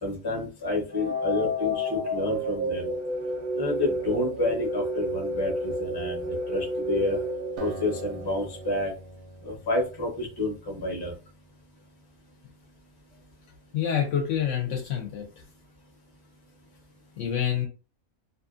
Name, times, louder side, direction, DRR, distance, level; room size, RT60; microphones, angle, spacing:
voice 1, 0.0-2.9 3.5-7.2 7.6-8.9 9.4-11.1, left 2 dB, 25° left, 0 dB, 0.6 m, -29 dB
sound 1, 0.9-8.9, equal, 85° right, 0.4 m, -31 dB
Acoustic guitar, 7.6-11.1, right 3 dB, 65° right, 0.8 m, -43 dB
voice 2, 13.7-15.3 17.2-17.7, left 9 dB, 65° left, 2 dB, 0.8 m, -27 dB
2.6 x 2.5 x 2.4 m, 0.33 s
omnidirectional pair, 1.5 m